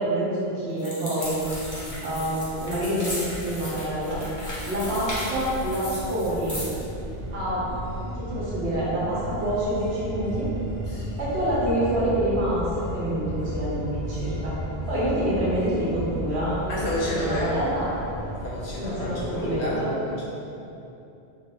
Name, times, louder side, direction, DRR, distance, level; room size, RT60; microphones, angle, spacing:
voice 1, 0.0-1.4 2.0-3.1 3.4-6.6 7.3-10.5 11.2-14.5 14.9-17.9 18.8-19.9, right 1 dB, 90° right, -9 dB, 1.2 m, -27 dB
sound 1, 0.8-6.8, left 1 dB, 25° left, 0.4 m, -37 dB
sound 2, 1.2-19.6, equal, 65° right, 0.8 m, -35 dB
voice 2, 1.8-2.2 10.9-11.2 16.7-17.6 18.4-20.3, left 1 dB, 60° left, -6 dB, 0.8 m, -31 dB
3.0 x 2.4 x 2.8 m, 2.8 s
omnidirectional pair, 1.1 m